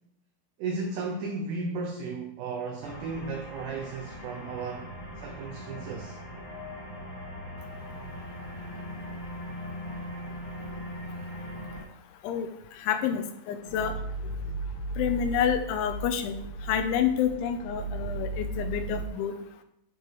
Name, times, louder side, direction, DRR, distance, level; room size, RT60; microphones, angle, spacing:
voice 1, 0.6-4.9 5.2-6.2 13.6-13.9, right 4 dB, 80° right, 2 dB, 2.4 m, -35 dB
sound 1, 2.8-11.8, equal, 40° left, 2.1 m, -40 dB
voice 2, 12.8-13.9 15.0-16.4 16.7-19.3, left 8 dB, 80° left, 8 dB, 2.9 m, -28 dB
sound 2, 13.7-19.0, right 2 dB, 60° left, 1.8 m, -35 dB
12.0 x 4.7 x 4.6 m, 0.78 s
omnidirectional pair, 6.0 m